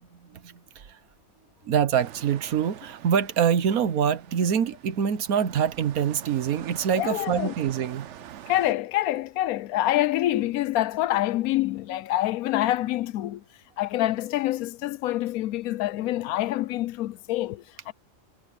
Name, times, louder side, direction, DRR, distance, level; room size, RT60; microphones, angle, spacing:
voice 1, 0.2-1.0 1.6-8.1, right 8 dB, 85° right, 1.5 m, -25 dB
sound 1, 1.9-8.7, right 10 dB, 65° right, 0.9 m, -45 dB
voice 2, 6.9-7.5 8.5-13.4 13.8-17.9, left 14 dB, 90° left, 1.1 m, -26 dB
omnidirectional pair, 1.5 m